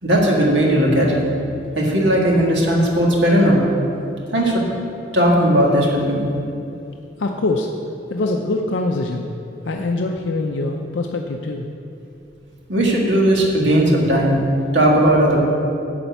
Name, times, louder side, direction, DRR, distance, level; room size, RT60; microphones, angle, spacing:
voice 1, 0.0-1.2 1.7-3.6 4.3-4.6 5.1-6.2 12.7-14.4 14.7-15.4, right 1 dB, 75° right, -2 dB, 1.9 m, -16 dB
voice 2, 7.2-7.7 8.1-9.3 9.6-11.7, left 2 dB, 85° left, 2 dB, 0.6 m, -23 dB
11.5 x 4.4 x 8.1 m, 2.7 s
head